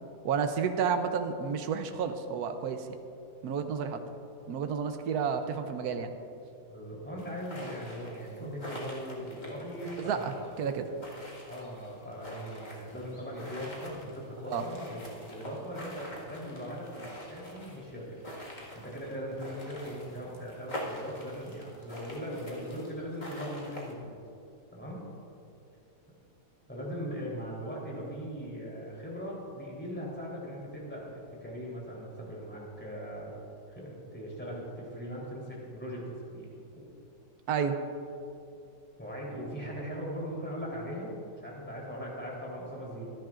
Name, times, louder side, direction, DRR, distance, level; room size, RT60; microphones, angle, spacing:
voice 1, 0.2-2.9 3.4-4.0 4.5-6.1 8.4-8.5 10.0-10.9 14.5-14.7 37.5-37.8, right 6 dB, 75° right, 7 dB, 1.3 m, -31 dB
voice 2, 6.7-10.5 11.4-18.2 18.7-24.1 24.7-25.1 26.7-33.4 33.7-36.9 39.0-43.1, equal, 5° left, -5 dB, 3.5 m, -40 dB
sound 1, 7.2-23.9, equal, 30° left, 1.9 m, -45 dB
25.0 x 10.5 x 2.5 m, 2.6 s
omnidirectional pair, 1.7 m